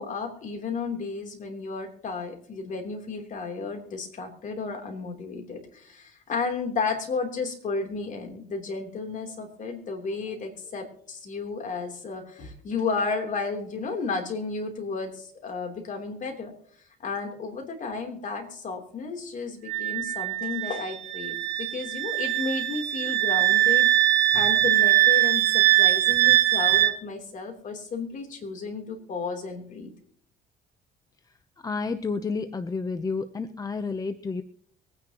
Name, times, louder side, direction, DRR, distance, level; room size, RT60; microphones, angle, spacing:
voice 1, 0.0-16.5 17.0-23.9 24.3-29.9, left 4 dB, 50° left, 3 dB, 3.3 m, -33 dB
Wind instrument woodwind instrument, 19.7-26.9, right 15 dB, 90° right, 1.1 m, -22 dB
voice 2, 31.6-34.4, left 4 dB, 20° left, 10 dB, 0.7 m, -30 dB
23.5 x 9.9 x 3.0 m, 0.62 s
cardioid pair, 110°, 17 cm